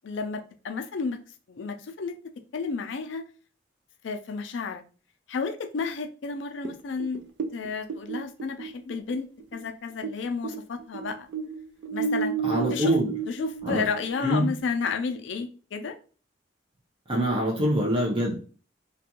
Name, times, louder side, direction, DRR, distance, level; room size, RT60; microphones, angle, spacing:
voice 1, 0.0-1.2 1.5-2.2 2.5-3.2 4.0-4.8 5.3-7.2 7.5-9.3 9.5-11.3 11.9-12.3 12.7-12.9 13.3-15.9, left 5 dB, 75° left, 7 dB, 0.4 m, -32 dB
sound 1, 6.6-10.2 10.4-14.6, right 6 dB, 65° right, 0.3 m, -32 dB
voice 2, 12.4-13.1 13.6-13.8 14.2-14.5 17.1-18.4, equal, 30° right, -2 dB, 0.6 m, -24 dB
2.5 x 2.3 x 2.8 m, 0.39 s
head